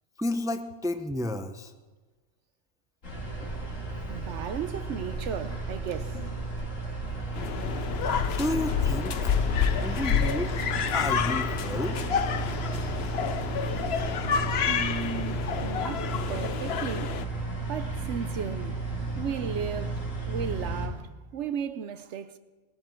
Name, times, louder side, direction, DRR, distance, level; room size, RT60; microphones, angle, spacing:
voice 1, 0.2-1.7 8.4-9.3 9.8-10.5 10.9-12.0, left 1 dB, 5° right, 0.5 m, -31 dB
sound 1, 3.0-20.9, right 3 dB, 85° left, 3.1 m, -33 dB
voice 2, 4.1-6.2 14.7-17.2 17.7-18.8 19.2-20.0 20.3-22.4, right 7 dB, 70° right, 1.0 m, -35 dB
sound 2, 7.3-17.2, left 7 dB, 60° left, 0.9 m, -29 dB
19.5 x 12.5 x 4.5 m
omnidirectional pair, 1.3 m